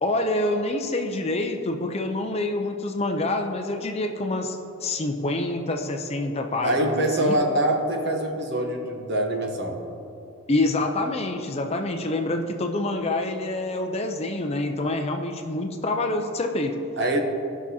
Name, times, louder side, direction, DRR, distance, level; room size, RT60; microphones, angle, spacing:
voice 1, 0.0-7.3 10.5-16.8, left 2 dB, 30° left, 4 dB, 0.5 m, -27 dB
voice 2, 6.6-9.8 17.0-17.2, right 1 dB, 50° right, 2 dB, 1.0 m, -24 dB
16.0 x 6.0 x 2.8 m, 2.8 s
head